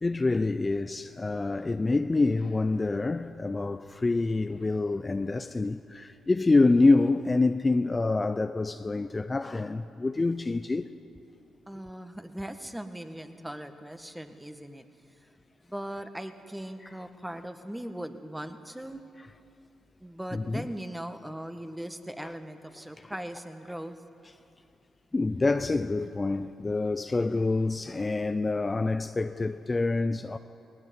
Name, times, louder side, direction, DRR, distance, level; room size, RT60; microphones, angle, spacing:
voice 1, 0.0-10.9 20.3-20.7 22.2-22.3 23.0-23.1 25.1-30.4, left 3 dB, 30° left, 0.7 m, -26 dB
voice 2, 11.7-14.9 15.2-15.3 15.6-19.0 20.0-24.0, right 1 dB, 10° right, 1.7 m, -39 dB
19.5 x 18.0 x 9.6 m
hypercardioid pair, 50°, 0 cm